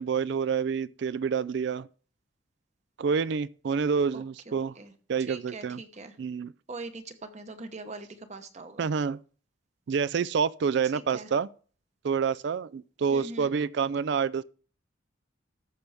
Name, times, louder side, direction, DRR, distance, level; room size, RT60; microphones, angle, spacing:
voice 1, 0.0-1.9 3.0-4.7 5.1-5.8 6.2-6.5 8.8-9.2 9.9-11.5 12.0-14.4, right 6 dB, 60° right, 0.4 m, -28 dB
voice 2, 4.1-4.9 5.3-6.1 6.7-8.9 10.9-11.3 13.1-13.5, right 3 dB, 35° right, 0.9 m, -42 dB
14.0 x 6.0 x 3.5 m
head